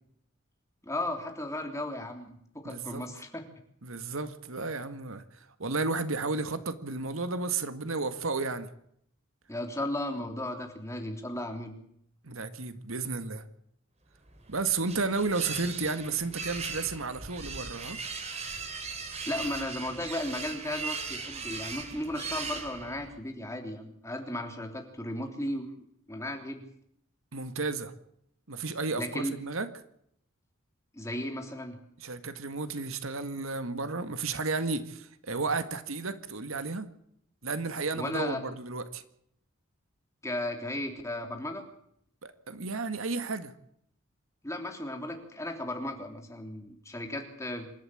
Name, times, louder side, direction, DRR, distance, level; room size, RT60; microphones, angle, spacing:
voice 1, 0.8-3.4 9.5-11.8 19.1-25.7 26.1-26.7 29.0-29.4 30.9-31.8 38.0-38.4 40.2-41.6 44.4-47.7, left 1 dB, 15° left, 3.3 m, -35 dB
voice 2, 2.7-3.0 3.8-5.2 5.6-8.7 12.2-13.4 14.5-18.0 27.3-27.9 28.5-29.7 32.0-36.9 37.4-39.0 42.2-43.5, right 3 dB, 75° right, 1.8 m, -32 dB
sound 1, 14.3-23.2, right 4 dB, 30° right, 3.2 m, -39 dB
27.0 x 12.5 x 8.7 m
head